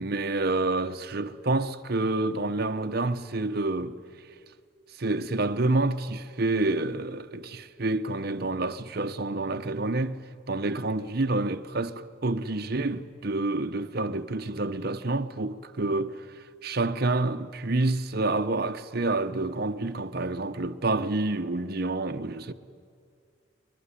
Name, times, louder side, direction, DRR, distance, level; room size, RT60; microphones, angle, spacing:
voice 1, 0.0-4.0 4.9-10.2 10.5-22.5, right 2 dB, 50° right, 0.9 m, -28 dB
23.5 x 22.0 x 10.0 m
head